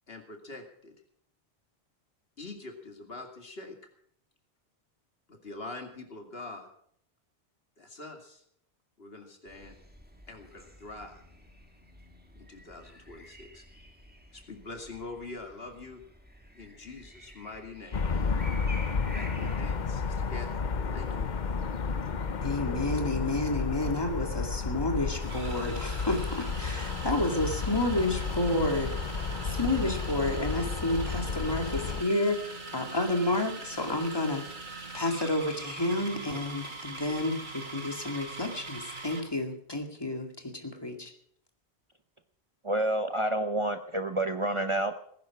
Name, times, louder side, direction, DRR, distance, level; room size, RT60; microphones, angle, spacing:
voice 1, 0.1-1.0 2.4-3.8 5.3-6.7 7.8-8.4 9.0-9.8 10.3-11.2 12.3-13.6 14.3-16.0 16.5-18.1 19.1-20.5 20.9-21.3, left 3 dB, 65° left, 4 dB, 2.7 m, -44 dB
sound 1, 9.5-20.4, equal, 10° right, 1.9 m, -51 dB
sound 2, 17.9-32.0, left 5 dB, 50° left, 0.9 m, -32 dB
voice 2, 22.4-28.9 29.4-41.1, left 2 dB, 20° left, 4 dB, 2.3 m, -30 dB
sound 3, 25.2-39.3, right 3 dB, 50° right, 2.0 m, -42 dB
voice 3, 42.6-44.9, right 1 dB, 30° right, 7 dB, 0.8 m, -28 dB
19.0 x 10.5 x 6.1 m, 0.66 s
omnidirectional pair, 1.1 m